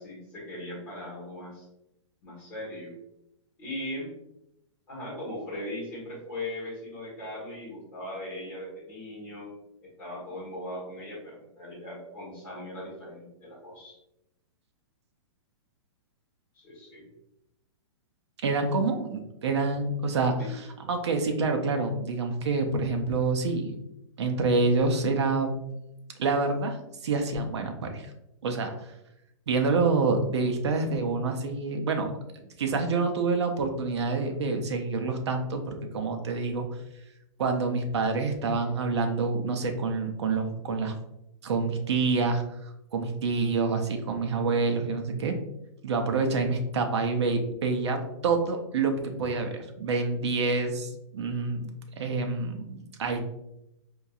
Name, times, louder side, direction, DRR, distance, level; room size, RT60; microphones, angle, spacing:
voice 1, 0.0-1.7 2.2-2.9 3.6-4.1 4.9-9.5 9.8-13.9 16.5-17.0 20.4-20.5, left 1 dB, 15° left, -7 dB, 1.4 m, -39 dB
voice 2, 18.4-23.8 24.2-25.5 26.2-28.1 28.4-28.9 29.5-32.1 32.6-36.7 37.4-40.9 41.4-45.4 45.8-51.7 52.0-53.3, right 3 dB, 60° right, 5 dB, 0.6 m, -27 dB
4.4 x 2.7 x 2.4 m, 0.85 s
hypercardioid pair, 180°, 16 cm